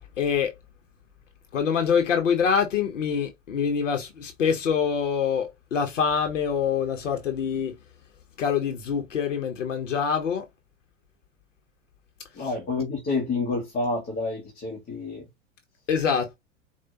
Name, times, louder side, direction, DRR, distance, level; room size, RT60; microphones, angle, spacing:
voice 1, 0.2-0.5 1.5-7.7 8.4-10.4 12.4-12.5 15.9-16.4, left 7 dB, 70° left, 1.2 m, -25 dB
voice 2, 12.4-15.2, left 3 dB, 25° left, 1.4 m, -29 dB
4.7 x 2.7 x 2.9 m
figure-of-eight pair, 90°, 39 cm